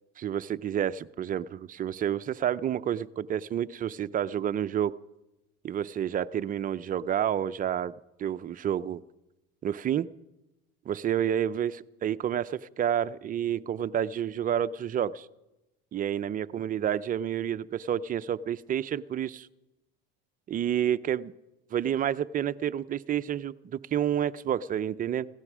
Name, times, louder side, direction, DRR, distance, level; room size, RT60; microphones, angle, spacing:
voice 1, 0.2-4.9 5.6-7.9 8.2-9.0 9.6-10.1 10.9-15.3 15.9-19.5 20.5-21.3 21.7-25.3, right 10 dB, 30° right, 14 dB, 0.5 m, -29 dB
17.0 x 13.5 x 6.1 m, 0.96 s
supercardioid pair, 120°, 30 cm